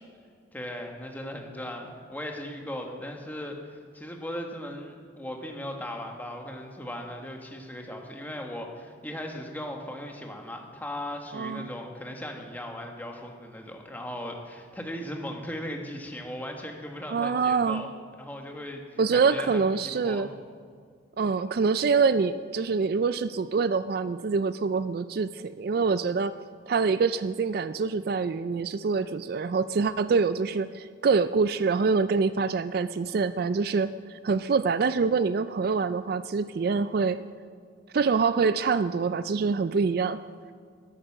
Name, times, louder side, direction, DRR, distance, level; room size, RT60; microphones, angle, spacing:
voice 1, 0.5-17.9 18.2-20.3, left 1 dB, 10° left, 2 dB, 1.5 m, -38 dB
voice 2, 11.3-11.7 17.1-17.8 19.0-20.3 21.2-26.3 26.7-37.2 37.9-40.2, right 5 dB, 50° right, 13 dB, 0.3 m, -25 dB
13.0 x 12.5 x 6.1 m, 2.2 s
head